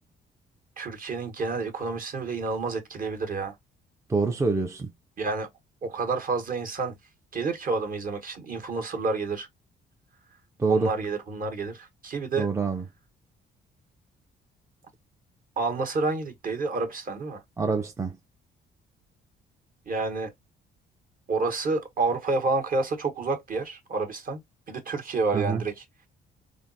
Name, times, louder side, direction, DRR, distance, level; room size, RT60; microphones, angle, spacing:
voice 1, 0.8-3.5 5.2-5.5 5.8-6.9 7.3-9.5 10.7-12.5 15.6-17.4 19.9-20.3 21.3-24.4 24.7-25.8, right 3 dB, 45° right, 1.0 m, -29 dB
voice 2, 4.1-4.9 10.6-10.9 12.4-12.8 17.6-18.1 25.3-25.6, right 4 dB, 15° right, 0.4 m, -25 dB
3.4 x 2.0 x 2.5 m
cardioid pair, 90°, 20 cm